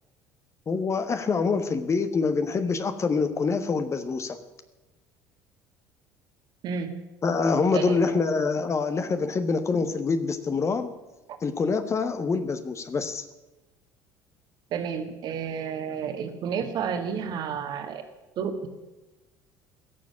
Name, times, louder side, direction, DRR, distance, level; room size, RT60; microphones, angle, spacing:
voice 1, 0.7-4.4 7.2-10.9 11.4-13.2, left 4 dB, 30° left, 9 dB, 1.3 m, -25 dB
voice 2, 7.7-8.0 14.7-18.0 18.4-18.7, right 7 dB, 50° right, 6 dB, 1.9 m, -31 dB
16.5 x 7.5 x 9.0 m, 1.1 s
figure-of-eight pair, 60°, 10 cm